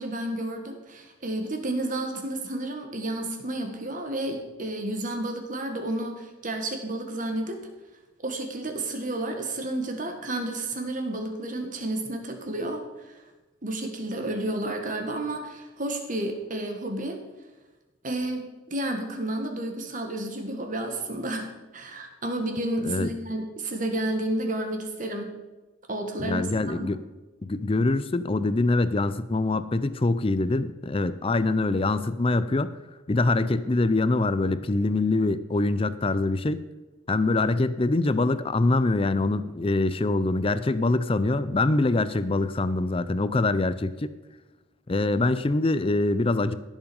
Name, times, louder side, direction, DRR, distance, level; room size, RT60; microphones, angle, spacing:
voice 1, 0.0-7.6 8.2-12.8 13.1-13.2 13.6-17.2 18.0-25.3 25.9-26.9, right 1 dB, 40° right, 4 dB, 1.8 m, -31 dB
voice 2, 26.2-27.0 27.4-32.8 33.1-36.6 37.1-44.1 44.9-46.5, left 2 dB, 25° left, 14 dB, 0.5 m, -24 dB
15.5 x 7.3 x 5.4 m, 1.2 s
head